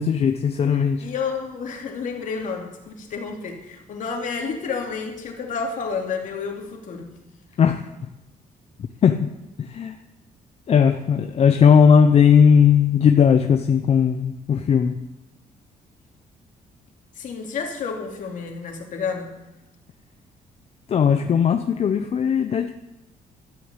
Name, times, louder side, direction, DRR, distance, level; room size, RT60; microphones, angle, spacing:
voice 1, 0.0-1.1 7.6-7.9 9.0-9.3 9.6-9.9 10.7-15.1 20.9-22.7, left 7 dB, 45° left, 7 dB, 0.7 m, -17 dB
voice 2, 1.0-7.1 17.2-19.3, left 5 dB, 65° left, 2 dB, 2.7 m, -30 dB
13.5 x 8.3 x 8.2 m, 0.94 s
cardioid pair, 130°, 14 cm